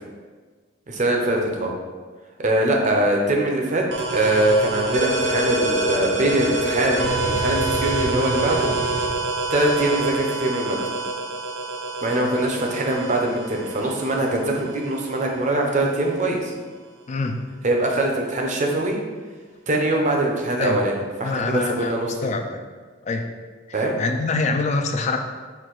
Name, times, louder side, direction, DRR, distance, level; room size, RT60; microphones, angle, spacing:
voice 1, 0.9-1.7 2.4-3.8 4.1-8.7 9.5-10.8 12.0-16.5 17.6-19.0 19.7-20.9 21.2-22.3 23.7-23.9, right 1 dB, 40° right, 1 dB, 0.6 m, -22 dB
sound 1, 3.9-15.3, right 2 dB, 75° right, 0.7 m, -26 dB
voice 2, 12.2-12.6 17.1-17.4 20.6-20.8 21.2-22.6 23.0-23.3 23.7-25.2, left 3 dB, 35° left, 5 dB, 0.3 m, -25 dB
4.5 x 2.7 x 3.8 m, 1.5 s
head